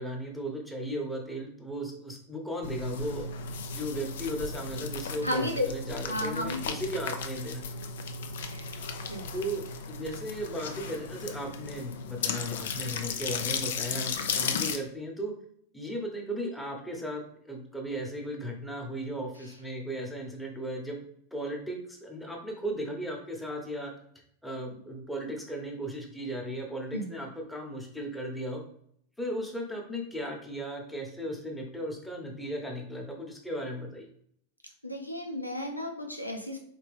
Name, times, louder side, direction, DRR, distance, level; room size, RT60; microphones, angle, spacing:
voice 1, 0.0-3.3 3.7-7.6 9.3-15.3 15.7-21.0 21.3-23.9 24.4-28.6 29.2-34.1, equal, 5° left, 0 dB, 1.1 m, -36 dB
sound 1, 2.6-14.8, left 5 dB, 60° left, 0.5 m, -35 dB
voice 2, 5.2-5.7 6.1-6.7 8.3-8.7 9.1-9.2 26.9-27.1 34.8-36.6, left 1 dB, 90° left, 2 dB, 0.7 m, -33 dB
4.4 x 3.3 x 3.3 m, 0.66 s
figure-of-eight pair, 90°, 0 cm